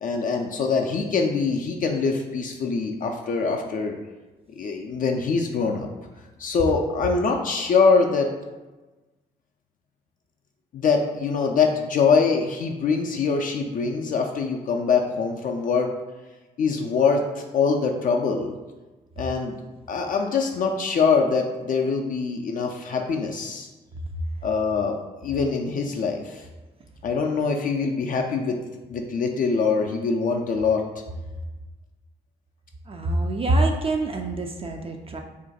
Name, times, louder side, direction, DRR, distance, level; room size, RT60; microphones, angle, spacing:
voice 1, 0.0-4.0 4.6-5.9 6.4-8.3 10.7-15.9 16.6-18.5 19.2-19.5 19.9-23.7 24.4-25.0 25.2-26.5 27.0-28.6 28.9-30.8, left 5 dB, 45° left, 2 dB, 0.4 m, -23 dB
voice 2, 32.9-35.2, right 2 dB, 30° right, 3 dB, 0.4 m, -25 dB
2.5 x 2.2 x 3.8 m, 1.2 s
hypercardioid pair, 40°, 20 cm